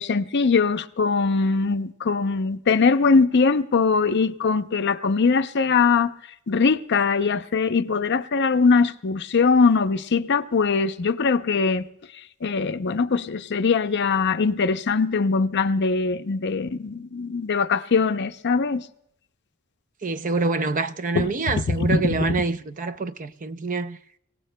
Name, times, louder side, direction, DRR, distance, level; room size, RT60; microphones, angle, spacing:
voice 1, 0.0-6.1 6.5-11.8 12.4-18.9 21.1-21.3 21.7-22.2, left 4 dB, 55° left, 0.6 m, -21 dB
voice 2, 20.0-24.0, right 3 dB, 40° right, 0.5 m, -26 dB
30.0 x 17.5 x 2.2 m
head